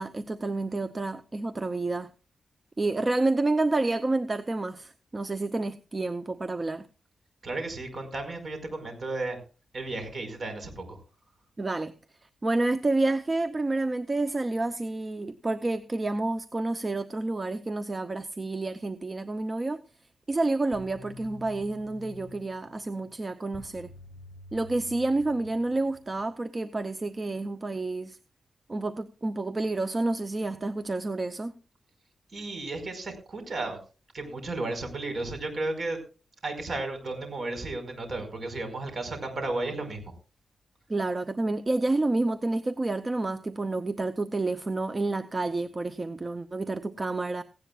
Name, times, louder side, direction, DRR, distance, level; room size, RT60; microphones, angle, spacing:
voice 1, 0.0-2.1 2.8-6.9 11.6-11.9 12.4-19.8 20.3-23.9 24.5-28.2 28.7-31.6 40.9-47.4, right 2 dB, 25° right, 0.7 m, -29 dB
voice 2, 7.4-9.4 9.7-11.0 32.3-33.8 34.1-36.0 36.4-40.1, right 2 dB, 50° right, 5.1 m, -34 dB
sound 1, 20.7-26.3, left 2 dB, 10° left, 4.2 m, -48 dB
17.5 x 16.5 x 2.4 m
wide cardioid pair, 125°, 0 cm